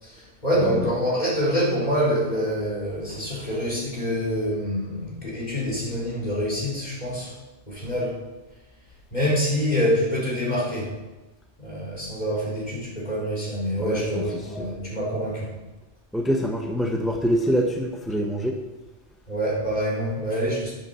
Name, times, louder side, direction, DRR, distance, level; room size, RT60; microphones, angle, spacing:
voice 1, 0.0-7.3 7.7-8.2 9.1-10.9 11.6-15.5 19.3-20.7, equal, 35° left, -6 dB, 4.6 m, -26 dB
voice 2, 16.1-18.5, equal, ahead, 2 dB, 0.9 m, -24 dB
11.0 x 8.2 x 7.1 m, 1.1 s
omnidirectional pair, 1.3 m